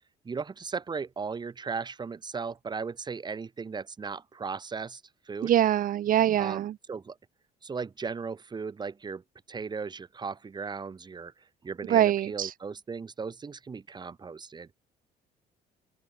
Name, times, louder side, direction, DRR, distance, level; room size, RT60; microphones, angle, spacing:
voice 1, 0.2-5.0 5.3-5.5 6.4-7.2 7.6-9.2 9.5-11.3 11.6-14.7, right 5 dB, 25° right, 1.3 m, -36 dB
voice 2, 5.4-6.7 11.9-12.5, right 12 dB, 55° right, 0.8 m, -24 dB
cardioid pair, 110°, 17 cm